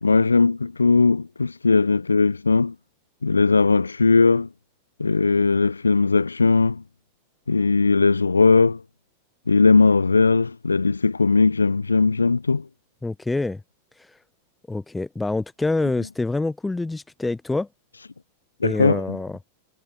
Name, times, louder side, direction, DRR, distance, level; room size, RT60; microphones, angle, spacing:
voice 1, 0.0-2.7 3.2-4.5 5.0-6.8 7.5-8.8 9.5-12.7 18.6-19.2, left 4 dB, 85° left, 0.4 m, -19 dB
voice 2, 13.0-13.6 14.0-14.2 14.7-17.7 18.6-19.4, left 2 dB, 10° left, 0.7 m, -26 dB
figure-of-eight pair, 90°, 0 cm